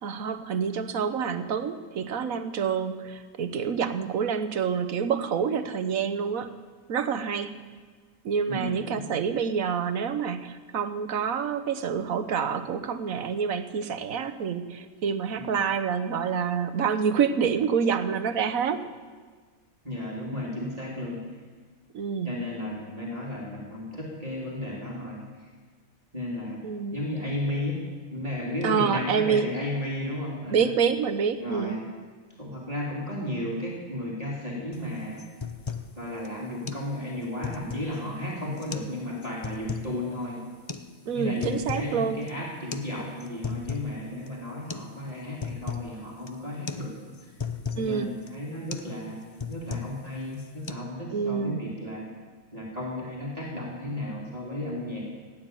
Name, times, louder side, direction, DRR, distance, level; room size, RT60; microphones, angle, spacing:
voice 1, 0.0-6.5 6.9-7.5 8.2-18.9 21.9-22.3 26.6-27.0 28.6-29.5 30.5-31.8 41.1-42.2 47.8-48.1 51.1-51.6, right 6 dB, 75° right, 10 dB, 1.4 m, -27 dB
voice 2, 8.5-9.0 15.4-15.6 19.8-21.2 22.2-25.5 26.1-26.6 26.9-27.8 28.1-30.7 31.4-31.8 32.4-35.2 36.0-40.4 41.1-46.9 47.2-47.3 47.8-52.1 52.5-55.0, left 1 dB, 25° right, -5 dB, 3.0 m, -34 dB
sound 1, 34.7-34.9 35.2-35.9 36.2-36.3 36.7-36.9 37.2-38.0 38.6-38.9 39.2-39.9 40.7-40.9 41.2-41.9 42.2-42.3 42.7-42.9 43.2-43.9 44.3-44.4 44.7-44.9 45.2-45.9 46.3-46.4 46.7-46.9 47.1-47.9 48.3-48.4 48.7-48.9 49.2-50.0 50.3-50.7, left 6 dB, 30° left, 0.5 m, -35 dB
16.5 x 9.5 x 9.1 m, 1.5 s
omnidirectional pair, 1.5 m